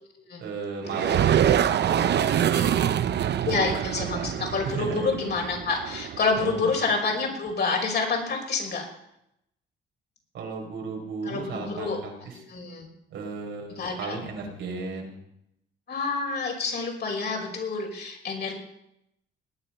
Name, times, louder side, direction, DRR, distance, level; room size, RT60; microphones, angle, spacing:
voice 1, 0.4-3.0 3.8-4.3 4.6-5.1 6.4-6.7 10.3-12.3 13.1-15.2, right 4 dB, 80° right, 0 dB, 4.9 m, -35 dB
sound 1, 0.8-6.5, right 10 dB, 60° right, 0.8 m, -25 dB
voice 2, 3.4-8.8 11.2-12.0 12.3-12.9 13.8-14.2 15.9-18.5, left 4 dB, 55° left, 0 dB, 5.6 m, -28 dB
19.5 x 9.6 x 5.8 m, 0.80 s
cardioid pair, 90°, 20 cm